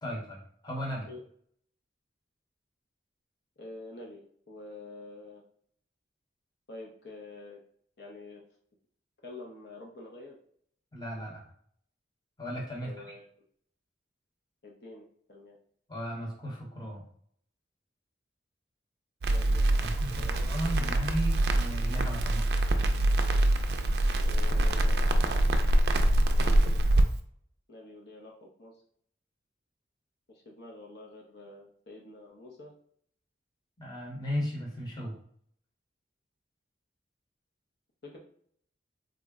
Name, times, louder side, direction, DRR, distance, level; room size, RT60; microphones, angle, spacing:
voice 1, 0.0-1.1 10.9-11.4 12.4-13.1 15.9-17.0 19.8-22.5 33.8-35.1, equal, 25° left, -2 dB, 0.8 m, -36 dB
voice 2, 3.6-5.4 6.7-7.6 8.0-8.4 9.2-10.4 12.8-13.3 14.6-15.6 19.3-19.7 20.1-21.0 24.2-25.0 27.7-28.8 30.3-32.7 38.0-38.2, left 2 dB, 65° left, -1 dB, 0.6 m, -47 dB
Crackle, 19.2-27.0, right 1 dB, 60° right, 0.3 m, -25 dB
3.7 x 2.0 x 3.5 m, 0.62 s
head